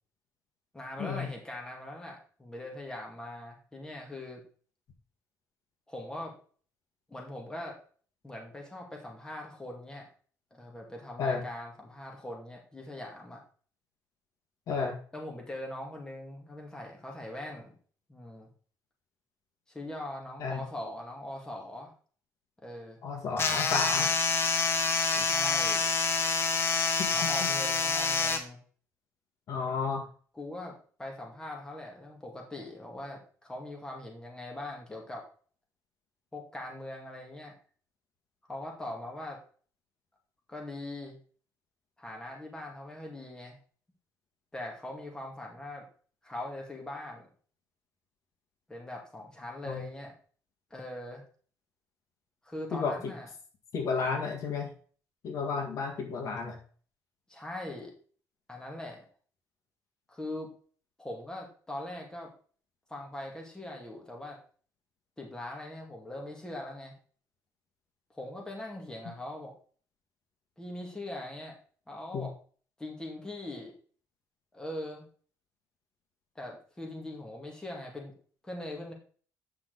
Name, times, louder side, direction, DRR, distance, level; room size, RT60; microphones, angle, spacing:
voice 1, 0.7-4.4 5.9-6.3 7.1-7.8 8.2-10.1 10.5-13.4 15.1-17.7 18.1-18.5 19.7-21.9 22.6-23.0 25.1-25.9 27.1-28.6 30.3-35.3 36.3-37.5 38.5-39.4 40.5-41.2 42.0-43.6 44.5-45.8 46.2-47.3 48.7-50.1 50.7-51.2 52.4-53.3 57.3-57.9 58.5-59.1 60.1-60.5 61.0-62.3 62.9-64.4 65.2-67.0 68.1-69.5 70.6-71.6 71.9-72.3 72.8-73.7 74.5-75.1 76.4-78.1 78.4-78.9, left 1 dB, 10° left, 0 dB, 2.2 m, -41 dB
voice 2, 23.0-24.2 26.8-27.3 29.5-30.1 49.7-49.9 52.7-53.1 53.7-54.7 55.2-56.6 72.1-72.3, left 5 dB, 60° left, 3 dB, 1.8 m, -32 dB
sound 1, 23.4-28.4, left 4 dB, 40° left, 1.2 m, -27 dB
8.8 x 5.8 x 4.0 m, 0.43 s
cardioid pair, 145°, 6 cm